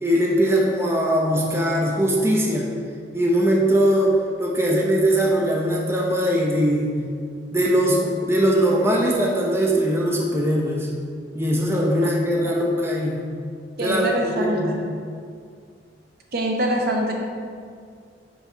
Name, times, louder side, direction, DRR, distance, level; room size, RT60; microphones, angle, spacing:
voice 1, 0.0-2.7 3.1-6.9 7.5-10.9 11.3-13.2 13.8-14.7, equal, 15° right, -2 dB, 0.7 m, -21 dB
voice 2, 13.8-14.8 16.3-17.1, right 1 dB, 60° right, 0 dB, 0.9 m, -24 dB
5.6 x 5.2 x 4.4 m, 2.2 s
head